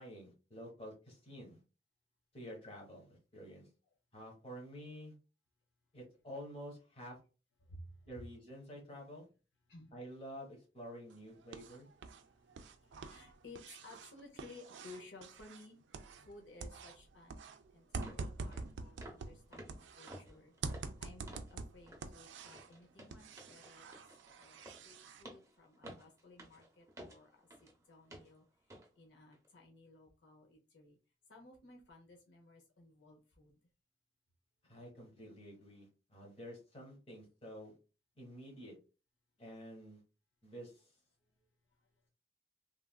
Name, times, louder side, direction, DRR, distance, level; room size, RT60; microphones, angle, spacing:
voice 1, 0.0-1.6 2.3-3.7 4.1-5.1 5.9-7.2 8.0-9.3 9.9-11.9 34.6-37.7 38.2-38.7 39.4-40.0 40.4-40.9, equal, 30° left, -1 dB, 1.1 m, -50 dB
voice 2, 7.6-8.0 9.7-10.0 12.2-15.8 16.2-17.5 17.7-20.5 21.0-24.0 24.3-27.5 27.9-28.4 29.0-31.0 31.3-33.5, left 2 dB, 75° left, 1 dB, 0.7 m, -57 dB
sound 1, 11.1-12.2 12.5-16.3 16.6-20.2 20.6-22.7 23.1-25.2, right 4 dB, 80° right, 0.4 m, -46 dB
sound 2, 17.4-17.5 18.0-18.2 18.5-18.7 19.0-19.3 19.5-21.6 21.9-22.1 22.5-27.8 28.1-28.3 28.7-28.9 29.3-29.5, right 1 dB, 15° right, 0.6 m, -54 dB
3.2 x 2.4 x 2.3 m, 0.33 s
head